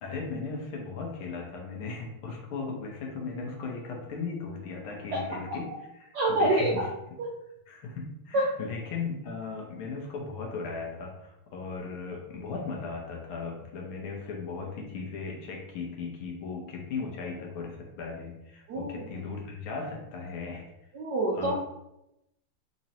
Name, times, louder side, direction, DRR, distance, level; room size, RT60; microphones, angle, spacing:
voice 1, 0.0-6.9 7.7-20.7 21.3-21.5, left 4 dB, 75° left, 0 dB, 1.6 m, -37 dB
voice 2, 6.1-6.8 8.3-8.4 18.7-19.0 20.9-21.5, right 1 dB, 75° right, -4 dB, 0.9 m, -26 dB
4.0 x 3.0 x 2.8 m, 0.87 s
omnidirectional pair, 2.4 m